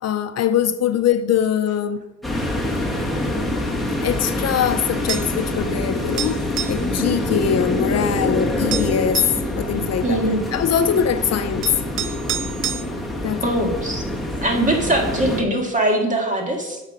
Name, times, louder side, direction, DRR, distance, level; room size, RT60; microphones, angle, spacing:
voice 1, 0.0-2.0 4.0-9.3 9.6-10.2 10.5-11.7 13.2-13.5, left 8 dB, 55° left, 0.6 m, -22 dB
sound 1, 2.2-15.4, left 1 dB, ahead, 1.5 m, -25 dB
sound 2, 5.1-5.4 6.2-6.8 8.2-8.3 8.7-9.4 11.0-11.1 11.6-12.8, right 9 dB, 45° right, 0.5 m, -28 dB
voice 2, 10.0-10.5 13.4-14.0 14.4-16.8, right 1 dB, 25° right, 1.9 m, -21 dB
8.2 x 5.7 x 4.9 m
cardioid pair, 90°, 30 cm